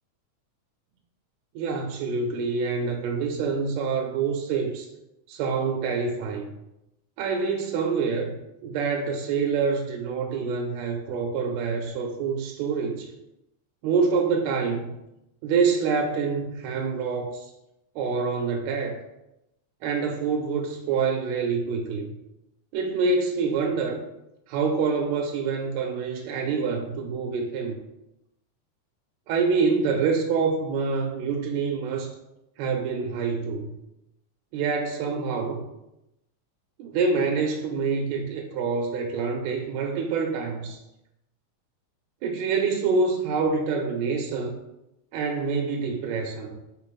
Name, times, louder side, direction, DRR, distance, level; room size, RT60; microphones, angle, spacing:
voice 1, 1.5-4.9 5.3-6.5 7.2-8.4 8.6-13.1 13.8-14.9 15.4-17.5 17.9-19.0 19.8-22.1 22.7-24.0 24.5-27.8 29.3-32.1 32.6-33.7 34.5-35.6 36.8-40.8 42.2-44.5 45.1-46.6, right 5 dB, 80° right, 2 dB, 1.7 m, -26 dB
4.2 x 3.7 x 3.0 m, 0.89 s
omnidirectional pair, 3.4 m